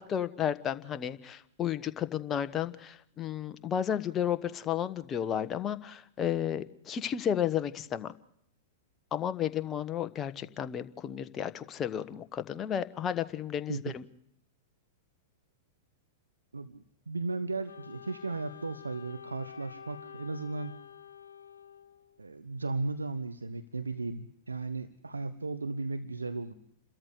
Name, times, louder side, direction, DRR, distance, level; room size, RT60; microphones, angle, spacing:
voice 1, 0.0-8.1 9.1-14.0, left 9 dB, 25° left, 11 dB, 1.3 m, -32 dB
voice 2, 16.5-20.8 22.2-26.5, right 3 dB, 90° right, 12 dB, 1.0 m, -36 dB
Wind instrument woodwind instrument, 17.7-22.3, left 8 dB, 80° left, 1.1 m, -49 dB
29.5 x 13.5 x 8.2 m, 0.73 s
figure-of-eight pair, 105°, 0 cm